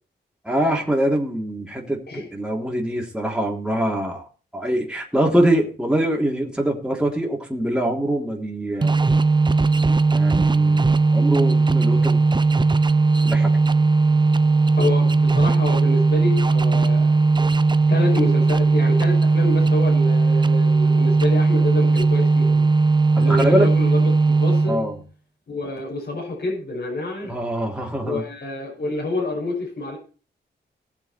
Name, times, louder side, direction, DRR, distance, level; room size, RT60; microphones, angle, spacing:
voice 1, 0.4-4.2 4.5-9.0 10.1-12.2 13.2-13.5 23.3-23.7 24.7-25.0 27.2-28.2, right 1 dB, 5° right, -1 dB, 3.5 m, -23 dB
sound 1, 8.8-24.9, right 3 dB, 25° right, 0.6 m, -18 dB
voice 2, 14.8-17.2 17.9-22.7 23.2-24.0 24.4-24.8 25.5-27.3 28.0-30.0, left 2 dB, 60° left, -1 dB, 5.7 m, -27 dB
19.0 x 7.0 x 4.5 m, 0.37 s
wide cardioid pair, 90°, 18 cm